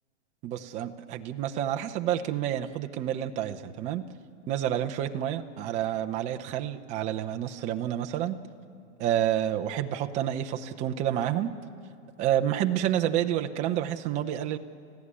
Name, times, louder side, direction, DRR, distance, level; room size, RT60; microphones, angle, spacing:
voice 1, 0.4-4.0 4.5-8.4 9.0-11.5 12.2-14.6, right 11 dB, 20° right, 6 dB, 0.7 m, -29 dB
29.5 x 15.0 x 9.8 m, 2.5 s
hypercardioid pair, 150°, 37 cm